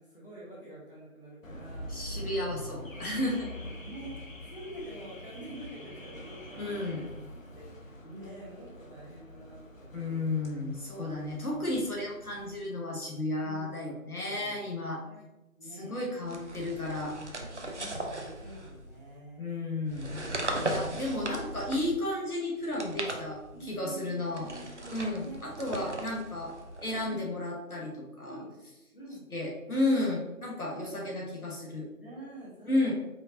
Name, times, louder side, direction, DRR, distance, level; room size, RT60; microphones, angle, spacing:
voice 1, 0.0-2.3 3.2-3.4 3.8-4.1 4.4-6.8 7.5-10.4 13.4-13.7 14.1-14.6 15.0-15.2 15.6-16.4 17.3-19.4 20.4-20.8 23.0-23.1 23.5-25.4 25.7-25.9 27.0-27.3 28.2-28.5 28.9-29.2 32.0-32.9, right 1 dB, 40° left, -6 dB, 1.1 m, -47 dB
Car / Alarm, 1.4-12.6, equal, 65° left, 0.8 m, -45 dB
voice 2, 1.9-3.5 6.6-7.0 9.9-15.0 15.7-17.2 19.4-20.2 20.6-24.5 24.9-26.5 26.8-28.4 29.3-31.9 32.7-32.9, left 2 dB, 80° left, -1 dB, 1.4 m, -33 dB
sound 1, 16.2-19.0 19.9-22.1 22.6-23.8 24.3-27.2, right 1 dB, 55° right, 0.6 m, -38 dB
4.9 x 2.6 x 2.8 m, 1.0 s
figure-of-eight pair, 170°, 43 cm